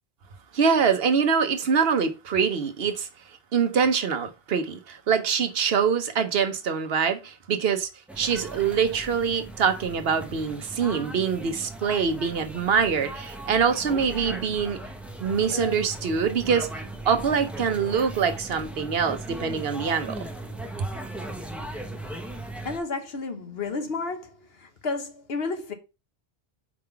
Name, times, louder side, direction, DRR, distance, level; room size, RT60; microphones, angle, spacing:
voice 1, 0.5-3.1 3.5-7.9 8.2-14.8 15.2-16.7 17.0-20.3 20.8-20.9, right 6 dB, 70° right, 1.0 m, -24 dB
sound 1, 8.1-22.8, right 1 dB, ahead, 0.8 m, -38 dB
voice 2, 22.6-25.7, left 3 dB, 75° left, 1.4 m, -32 dB
4.9 x 3.7 x 5.6 m
omnidirectional pair, 1.0 m